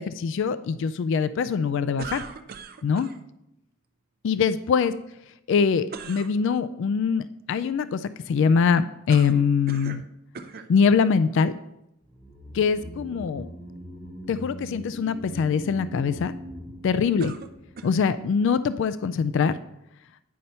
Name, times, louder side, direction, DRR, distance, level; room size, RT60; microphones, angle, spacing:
voice 1, 0.0-2.2 2.8-3.1 4.2-4.9 5.5-10.0 10.7-11.5 12.5-13.5 14.3-16.3 16.8-17.3 17.8-19.5, left 6 dB, 65° left, 13 dB, 0.3 m, -23 dB
sound 1, 2.0-3.2 5.9-6.3 9.1-10.1 10.3-10.7 11.5-11.6 17.2-18.1, right 5 dB, 50° right, 0.5 m, -39 dB
sound 2, 12.1-18.5 18.8-18.9, left 1 dB, 10° left, 0.9 m, -41 dB
9.3 x 5.4 x 4.3 m, 0.84 s
head